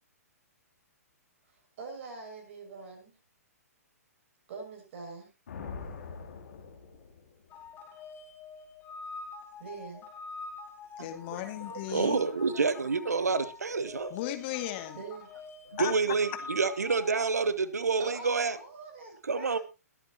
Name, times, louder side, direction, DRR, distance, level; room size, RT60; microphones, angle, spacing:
voice 1, 1.5-3.1 4.5-5.3 9.6-10.1 15.0-15.3 18.0-19.6, right 4 dB, 45° right, 6.6 m, -44 dB
Thunder, 5.5-7.7, left 5 dB, 60° left, 3.9 m, -43 dB
sound 1, 7.5-17.5, left 4 dB, 25° left, 4.6 m, -46 dB
voice 2, 11.0-12.2 14.1-15.0 15.8-15.9, left 14 dB, 40° left, 2.3 m, -35 dB
voice 3, 11.7-14.1 15.7-18.6 19.2-19.6, right 4 dB, 75° right, 1.3 m, -28 dB
22.0 x 8.8 x 2.9 m
figure-of-eight pair, 120°, 9 cm